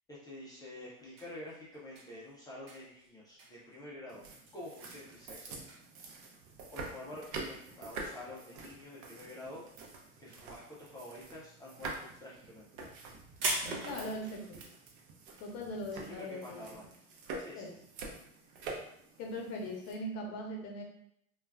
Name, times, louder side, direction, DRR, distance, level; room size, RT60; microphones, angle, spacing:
voice 1, 0.1-4.2 4.5-5.6 6.7-12.7 16.0-16.9 17.4-17.8, left 1 dB, 10° left, -7 dB, 0.3 m, -48 dB
sound 1, 1.0-8.9 9.2-9.9 10.2-14.1, right 2 dB, 70° right, 1.0 m, -41 dB
sound 2, 4.1-19.9, right 3 dB, 55° right, 0.7 m, -47 dB
voice 2, 13.8-14.4 15.4-16.6 17.6-17.7 19.2-20.8, left 1 dB, 35° left, 0 dB, 0.8 m, -40 dB
2.3 x 2.2 x 3.3 m, 0.72 s
hypercardioid pair, 110°, 42 cm